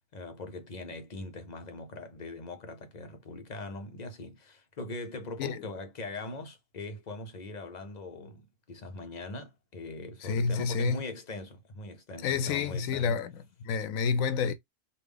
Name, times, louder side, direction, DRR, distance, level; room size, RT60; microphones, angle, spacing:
voice 1, 0.1-13.2, left 2 dB, 40° left, 0.7 m, -41 dB
voice 2, 10.2-11.0 12.2-14.5, left 5 dB, 80° left, 1.0 m, -29 dB
3.5 x 2.6 x 3.3 m
omnidirectional pair, 1.4 m